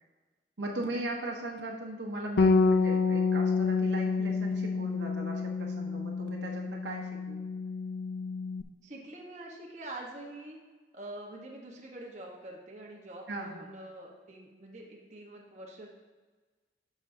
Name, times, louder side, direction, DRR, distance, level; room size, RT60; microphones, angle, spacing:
voice 1, 0.6-7.4 13.3-13.7, right 1 dB, 85° right, -1 dB, 1.2 m, -38 dB
Bass guitar, 2.4-8.6, left 4 dB, 85° left, 0.5 m, -28 dB
voice 2, 8.8-10.6 10.9-15.9, right 1 dB, 40° right, -1 dB, 1.1 m, -45 dB
11.5 x 6.3 x 2.7 m, 1.3 s
head